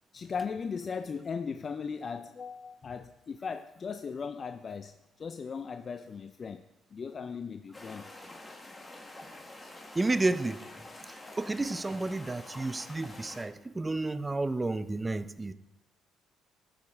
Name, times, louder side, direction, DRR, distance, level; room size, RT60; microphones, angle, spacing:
voice 1, 0.1-6.6 6.9-8.1 9.6-9.7, left 5 dB, 45° left, 10 dB, 0.3 m, -38 dB
sound 1, 7.7-13.4, left 2 dB, 20° left, 1.3 m, -47 dB
voice 2, 9.9-10.6 11.1-15.5, right 2 dB, 20° right, 13 dB, 0.4 m, -31 dB
11.5 x 4.9 x 3.6 m, 0.92 s
supercardioid pair, 60°, 0 cm